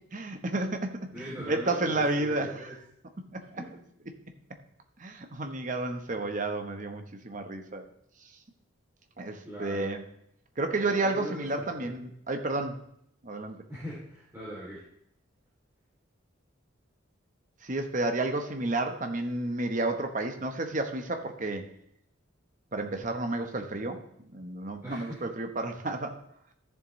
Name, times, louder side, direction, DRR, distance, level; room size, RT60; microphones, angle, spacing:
voice 1, 0.1-1.1 1.4-2.5 3.3-3.4 5.0-7.8 9.2-10.0 10.6-12.8 13.2-13.6 17.6-21.6 22.7-24.0 24.3-26.2, right 2 dB, 40° right, 5 dB, 1.0 m, -31 dB
voice 2, 1.1-2.7 3.5-3.7 9.4-9.9 10.8-11.9 13.7-14.8 24.8-25.2, equal, 10° right, -9 dB, 2.8 m, -41 dB
13.5 x 7.3 x 3.1 m, 0.73 s
head